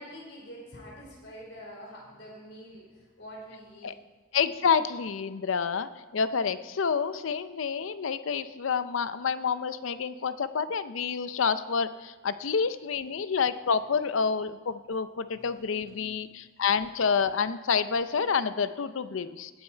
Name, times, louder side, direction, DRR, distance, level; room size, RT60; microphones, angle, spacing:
voice 1, 0.0-3.9 15.3-16.1, equal, 65° left, -3 dB, 4.7 m, -46 dB
voice 2, 4.3-19.5, left 6 dB, 85° left, 13 dB, 0.5 m, -28 dB
17.5 x 9.0 x 4.5 m, 1.3 s
head